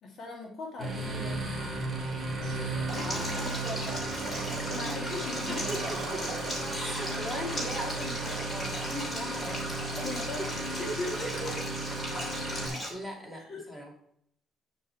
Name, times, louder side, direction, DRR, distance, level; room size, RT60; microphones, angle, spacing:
voice 1, 0.0-1.9 2.9-5.7 7.0-7.1 10.0-11.6 13.5-13.7, left 2 dB, 50° left, 0 dB, 2.1 m, -40 dB
sound 1, 0.8-12.7, right 2 dB, 10° right, 3.0 m, -35 dB
sound 2, 1.8-8.5, right 8 dB, 70° right, 1.1 m, -44 dB
Stream, 2.9-12.9, equal, 25° left, 3.0 m, -38 dB
voice 2, 3.0-3.5 4.8-5.0 5.5-6.2 6.6-9.8 10.4-10.5 12.7-13.9, equal, 10° left, -1 dB, 2.5 m, -39 dB
8.9 x 7.1 x 4.6 m, 0.70 s
cardioid pair, 150°, 0 cm